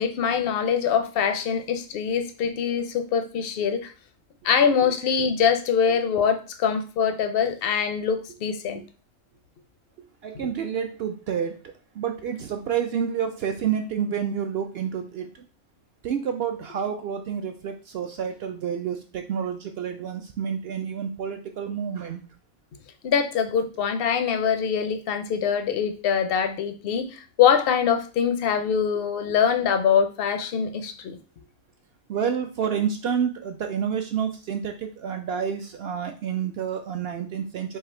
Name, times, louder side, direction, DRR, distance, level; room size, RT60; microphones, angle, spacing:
voice 1, 0.0-3.9 4.4-8.8 10.3-10.5 23.0-31.2, left 7 dB, 65° left, 8 dB, 0.6 m, -23 dB
voice 2, 10.2-11.6 11.9-15.4 16.0-22.2 32.1-37.8, right 7 dB, 70° right, 6 dB, 0.5 m, -29 dB
4.7 x 2.4 x 4.3 m, 0.35 s
omnidirectional pair, 1.5 m